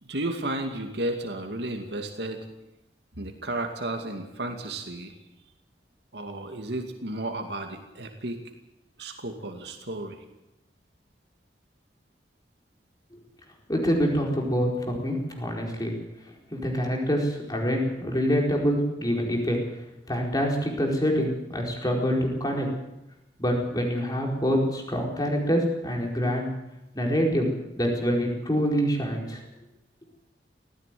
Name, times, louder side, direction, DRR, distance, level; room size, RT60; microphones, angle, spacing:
voice 1, 0.0-2.5 3.2-5.1 6.1-8.4 9.0-10.2, right 1 dB, 75° right, 4 dB, 2.4 m, -33 dB
voice 2, 13.7-15.9 16.5-19.6 20.1-22.7 23.4-26.5 26.9-27.5 27.7-29.4, equal, 20° left, 0 dB, 4.6 m, -26 dB
18.5 x 15.5 x 9.3 m, 0.96 s
head